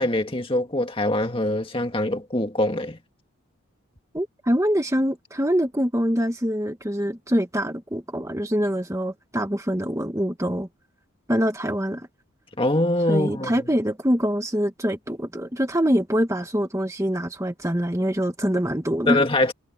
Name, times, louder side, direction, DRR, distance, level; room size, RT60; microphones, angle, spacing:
voice 1, 0.0-3.0 12.6-13.5 19.1-19.5, left 1 dB, 25° left, 1.9 m, -23 dB
voice 2, 4.1-10.7 11.3-12.1 13.1-19.2, equal, 15° right, 1.4 m, -24 dB
head